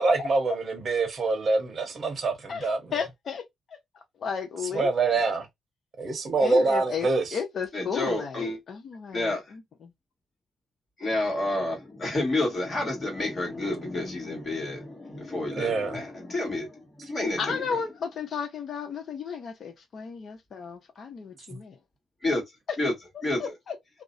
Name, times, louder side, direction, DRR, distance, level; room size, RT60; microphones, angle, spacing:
voice 1, 0.0-2.8 4.7-5.5 6.0-7.2 15.6-16.0 21.5-21.6, right 3 dB, 40° right, 0.8 m, -25 dB
voice 2, 2.5-3.8 4.2-5.2 6.4-9.9 17.4-21.8 23.4-23.8, left 6 dB, 55° left, 0.7 m, -34 dB
voice 3, 7.7-8.6 9.1-9.4 11.0-17.8 22.2-22.4 22.8-22.9 23.2-23.5, left 2 dB, 35° left, 1.4 m, -29 dB
2.5 x 2.1 x 2.4 m
cardioid pair, 125°, 0 cm